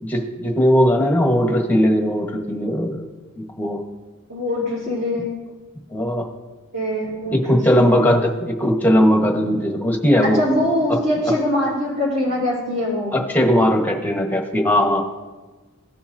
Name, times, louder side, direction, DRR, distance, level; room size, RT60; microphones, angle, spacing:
voice 1, 0.0-3.1 3.6-3.8 5.9-6.3 7.3-10.4 10.9-11.0 13.1-15.0, equal, 10° left, 1 dB, 1.2 m, -18 dB
voice 2, 4.3-5.3 6.7-8.0 10.2-13.1, left 1 dB, 45° right, -10 dB, 3.3 m, -23 dB
17.5 x 5.8 x 2.7 m, 1.3 s
head